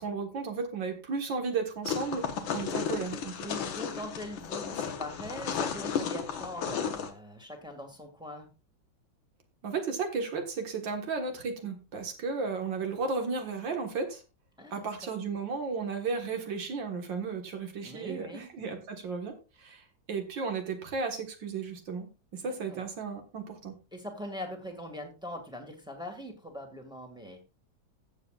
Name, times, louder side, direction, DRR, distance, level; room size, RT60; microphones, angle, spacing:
voice 1, 0.0-3.5 9.6-14.2 14.7-23.8, right 4 dB, 70° right, 4 dB, 2.2 m, -34 dB
sound 1, 1.8-7.1, left 7 dB, 80° left, 1.8 m, -34 dB
voice 2, 3.4-8.5 14.6-15.2 17.8-18.8 22.7-22.8 23.9-27.4, equal, ahead, 2 dB, 1.7 m, -42 dB
16.5 x 7.2 x 2.4 m, 0.30 s
omnidirectional pair, 2.1 m